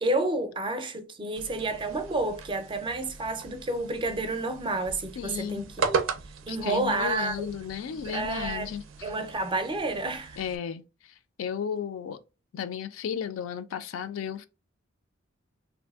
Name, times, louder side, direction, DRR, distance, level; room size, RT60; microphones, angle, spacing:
voice 1, 0.0-6.0 6.5-7.5 8.0-8.7 9.0-10.4, right 2 dB, 25° right, 0.4 m, -30 dB
sound 1, 1.4-10.6, right 5 dB, 85° right, 0.4 m, -37 dB
voice 2, 5.2-5.7 6.5-9.1 10.4-12.2 12.5-14.5, left 8 dB, 85° left, 0.3 m, -34 dB
3.2 x 2.5 x 2.3 m
head